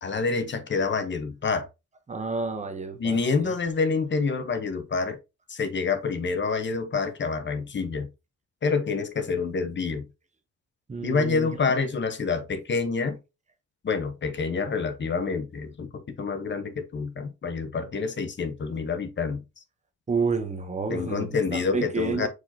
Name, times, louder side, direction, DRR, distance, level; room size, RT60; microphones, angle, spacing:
voice 1, 0.0-1.7 3.0-5.2 5.5-8.1 8.6-10.1 11.0-13.2 13.8-19.4 20.9-22.3, left 4 dB, 40° left, 1.0 m, -27 dB
voice 2, 2.1-3.5 10.9-11.5 20.1-22.3, right 4 dB, 25° right, 1.0 m, -30 dB
4.9 x 3.7 x 2.8 m
cardioid pair, 90°, 30 cm